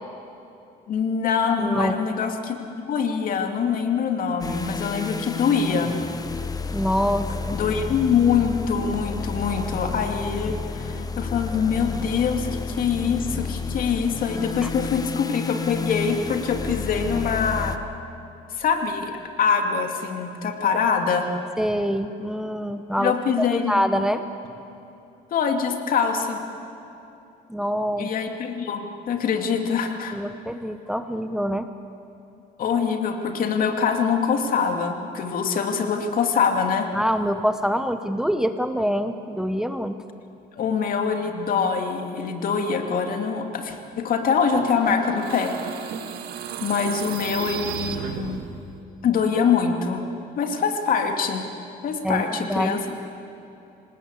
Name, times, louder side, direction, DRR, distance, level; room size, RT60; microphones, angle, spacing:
voice 1, 0.9-2.6 2.9-5.9 7.5-17.8 18.5-21.3 23.0-23.8 25.3-26.4 28.0-28.8 29.1-30.2 32.6-36.9 40.5-45.9 46.6-48.4 49.0-50.0 50.4-51.5 51.8-53.0, left 6 dB, 55° left, 4 dB, 2.7 m, -24 dB
voice 2, 1.6-2.0 6.7-7.6 14.6-14.7 21.6-23.1 23.4-24.2 27.5-28.1 30.1-31.7 36.9-40.0 52.0-52.2 52.5-52.8, equal, 5° right, 9 dB, 0.9 m, -25 dB
sound 1, 4.4-17.8, left 4 dB, 20° left, 1.1 m, -31 dB
sound 2, 44.4-48.7, right 8 dB, 70° right, 1.7 m, -33 dB
26.5 x 18.5 x 8.4 m, 2.9 s
cardioid pair, 110°, 17 cm